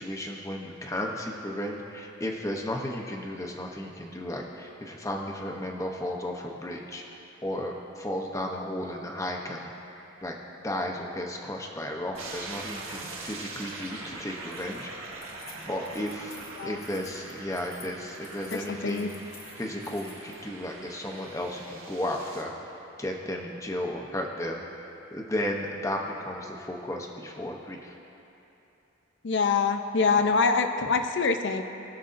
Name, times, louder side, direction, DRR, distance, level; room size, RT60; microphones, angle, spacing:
voice 1, 0.0-7.0 7.4-9.7 10.2-10.4 10.6-14.9 15.7-19.2 19.6-22.5 23.0-28.0, left 1 dB, 15° left, 1 dB, 0.8 m, -34 dB
sound 1, 12.1-22.4, right 3 dB, 90° right, 1.6 m, -42 dB
Keys jangling, 14.4-20.4, left 5 dB, 85° left, 1.3 m, -51 dB
voice 2, 18.5-19.1 29.2-31.6, left 4 dB, 60° left, 7 dB, 0.5 m, -25 dB
19.5 x 6.9 x 2.6 m, 2.9 s
head